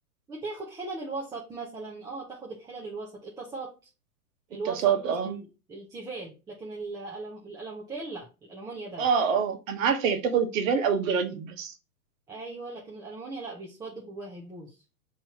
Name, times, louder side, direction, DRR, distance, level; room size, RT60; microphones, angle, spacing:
voice 1, 0.3-3.7 4.5-4.9 5.2-5.4 5.7-9.1 12.3-14.7, right 3 dB, 10° right, 0.6 m, -38 dB
voice 2, 4.7-5.4 9.0-11.7, right 6 dB, 60° right, 1.1 m, -26 dB
5.4 x 3.1 x 2.8 m
hypercardioid pair, 125°, 45 cm